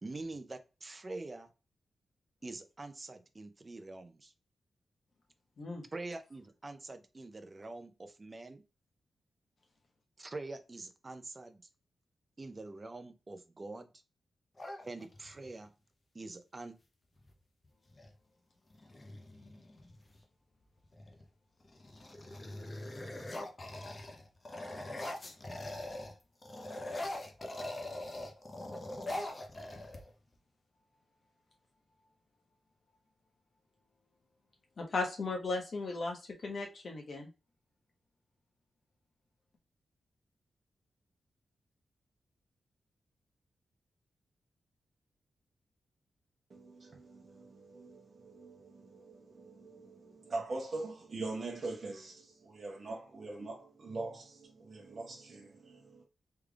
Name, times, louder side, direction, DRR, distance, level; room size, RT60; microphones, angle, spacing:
voice 1, 0.0-1.5 2.4-4.3 5.9-8.6 10.2-11.6 12.4-13.9 14.8-15.7 16.1-16.8, right 2 dB, 30° right, 0.5 m, -45 dB
sound 1, 14.6-15.5 17.2-17.3 17.6-18.1 18.7-20.2 20.8-21.2 21.6-26.1 26.4-30.3, left 1 dB, 30° left, 0.7 m, -42 dB
voice 2, 34.8-37.3, left 3 dB, 50° left, 1.1 m, -36 dB
voice 3, 46.5-56.0, right 3 dB, 50° right, 0.9 m, -43 dB
3.4 x 3.4 x 2.4 m
wide cardioid pair, 120°, 0 cm